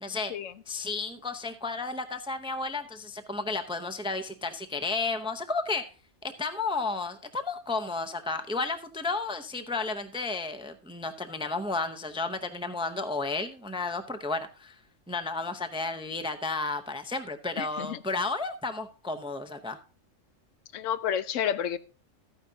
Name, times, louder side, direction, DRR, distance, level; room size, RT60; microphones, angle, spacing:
voice 1, 0.0-0.3 0.7-5.8 6.2-14.7 15.1-19.8, left 3 dB, 5° right, 0.4 m, -32 dB
voice 2, 17.6-18.0 20.7-21.8, left 9 dB, 85° left, 1.0 m, -30 dB
13.5 x 9.5 x 2.7 m
omnidirectional pair, 1.3 m